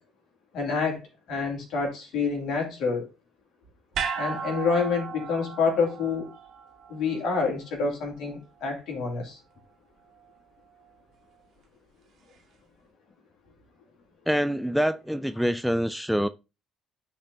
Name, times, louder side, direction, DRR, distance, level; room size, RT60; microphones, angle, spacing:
voice 1, 0.5-1.0 1.3-3.1 4.2-6.3 6.9-9.4, left 4 dB, 60° left, 2.4 m, -27 dB
sound 1, 3.9-8.3 8.6-8.7, right 6 dB, 55° right, 1.8 m, -36 dB
voice 2, 14.3-16.3, equal, ahead, 0.3 m, -25 dB
11.5 x 4.1 x 2.6 m
hypercardioid pair, 50°, 0 cm